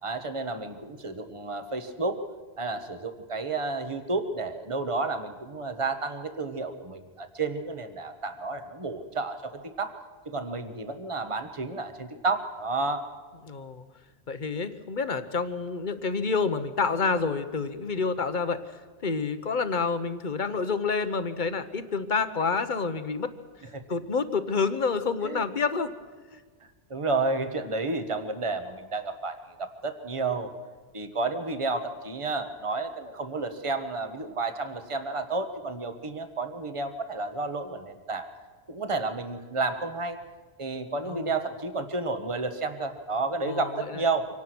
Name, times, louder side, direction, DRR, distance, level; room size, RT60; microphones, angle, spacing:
voice 1, 0.0-2.2 2.6-9.9 10.2-13.0 23.7-23.8 25.2-25.4 26.9-30.5 30.9-38.3 38.7-40.2 40.6-44.3, right 3 dB, 30° right, 8 dB, 1.3 m, -31 dB
voice 2, 13.5-13.8 14.3-18.6 19.0-23.3 23.9-25.9 26.3-26.4 41.0-41.3 43.5-43.8, left 4 dB, 45° left, 11 dB, 1.2 m, -28 dB
25.0 x 18.0 x 6.2 m, 1.4 s
omnidirectional pair, 1.1 m